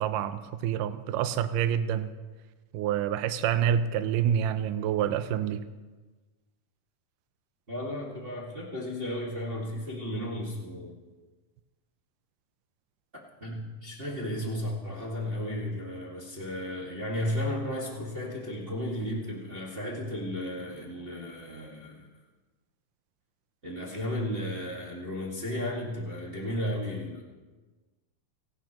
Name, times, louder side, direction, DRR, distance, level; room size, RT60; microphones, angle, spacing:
voice 1, 0.0-2.1 2.7-5.6, right 9 dB, 80° right, 11 dB, 2.2 m, -27 dB
voice 2, 7.7-11.0 13.4-22.1 23.6-27.2, left 1 dB, 20° right, -4 dB, 1.7 m, -34 dB
29.5 x 12.0 x 3.1 m, 1.3 s
omnidirectional pair, 3.8 m